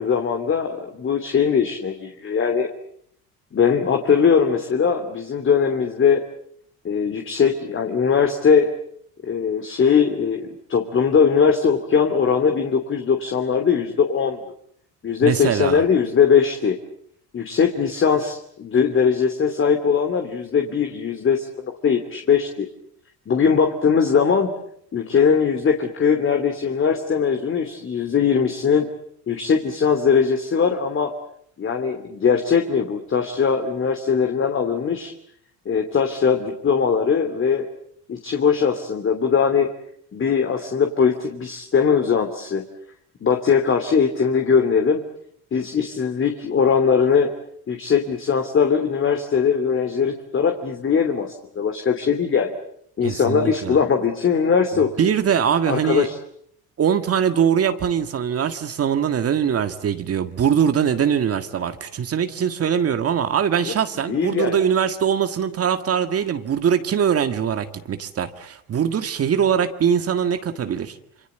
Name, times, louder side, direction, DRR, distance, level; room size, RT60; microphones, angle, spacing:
voice 1, 0.0-2.7 3.5-6.2 6.8-8.7 9.2-14.4 15.0-16.8 17.3-22.7 23.3-24.5 24.9-28.9 29.3-31.1 31.6-35.1 35.6-37.7 38.1-39.7 40.1-42.6 43.2-45.0 45.5-47.3 47.7-52.5 53.0-55.1 55.7-56.1 63.6-63.7 64.1-64.6, left 6 dB, 35° left, 5 dB, 2.8 m, -20 dB
voice 2, 15.2-15.8 53.0-53.8 55.0-56.1 56.8-71.0, right 8 dB, 45° right, 9 dB, 1.8 m, -22 dB
27.5 x 25.0 x 8.0 m, 0.68 s
cardioid pair, 110°, 34 cm